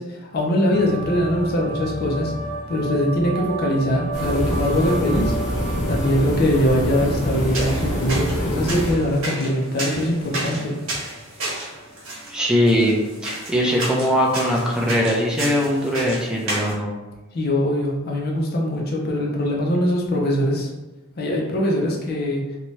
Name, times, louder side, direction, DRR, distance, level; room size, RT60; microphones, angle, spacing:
voice 1, 0.0-2.3 2.7-5.3 5.9-10.7 17.3-20.7 21.2-22.4, equal, 50° left, -1 dB, 0.5 m, -22 dB
sound 1, 0.7-11.2 11.6-12.3, right 1 dB, 60° right, 0.5 m, -34 dB
sound 2, 4.1-9.1, equal, 70° left, 0.9 m, -25 dB
sound 3, 7.3-16.7, right 1 dB, 80° right, 1.1 m, -32 dB
voice 2, 12.3-16.9, equal, 5° right, -3 dB, 0.5 m, -21 dB
2.8 x 2.2 x 3.0 m, 1.1 s
head